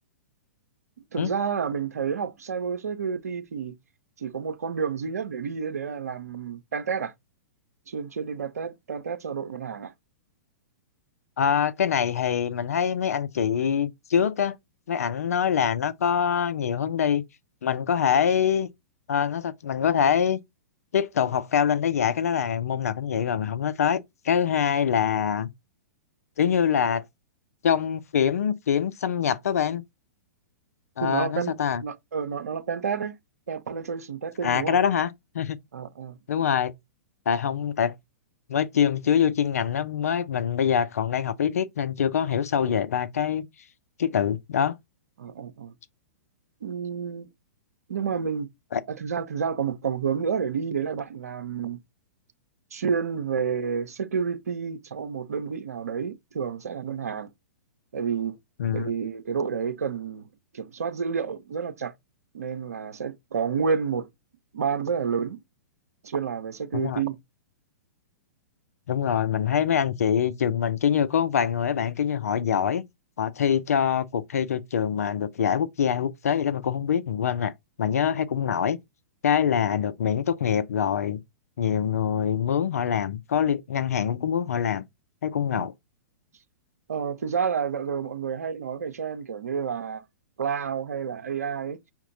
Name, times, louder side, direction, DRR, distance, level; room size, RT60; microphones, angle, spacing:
voice 1, 1.1-3.8 4.2-7.1 7.9-9.9 31.0-31.5 31.8-33.2 33.5-34.8 35.7-36.2 45.2-45.7 46.6-47.3 47.9-48.5 48.9-51.8 52.7-57.3 57.9-58.4 58.7-60.2 60.5-61.9 62.3-64.1 64.5-65.4 66.0-67.2 85.5-85.7 86.9-90.0 90.4-91.8, right 6 dB, 75° right, 0.5 m, -30 dB
voice 2, 11.4-14.6 14.9-17.2 17.6-18.7 19.1-20.4 20.9-25.5 26.4-27.0 27.6-29.8 31.0-31.8 34.4-35.6 36.3-36.7 37.3-37.9 38.5-43.5 44.0-44.8 48.7-48.8 58.6-58.9 66.7-67.0 68.9-72.8 73.2-77.5 77.8-78.8 79.2-81.2 81.6-84.8 85.2-85.7, left 8 dB, 70° left, 0.5 m, -24 dB
5.8 x 2.2 x 3.9 m
hypercardioid pair, 110°, 8 cm